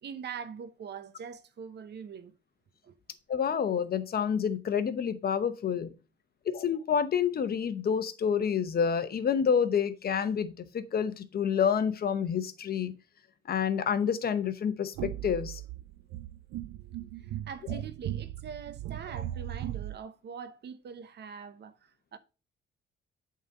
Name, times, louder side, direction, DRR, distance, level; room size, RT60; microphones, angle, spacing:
voice 1, 0.0-2.3 2.8-3.0 17.2-22.2, right 7 dB, 60° right, 0.9 m, -43 dB
voice 2, 3.3-5.9 6.5-12.9 13.5-15.6, left 7 dB, 50° left, 0.9 m, -28 dB
sound 1, 14.9-20.0, right 13 dB, 90° right, 0.4 m, -38 dB
7.9 x 3.9 x 5.4 m
cardioid pair, 90°, 20 cm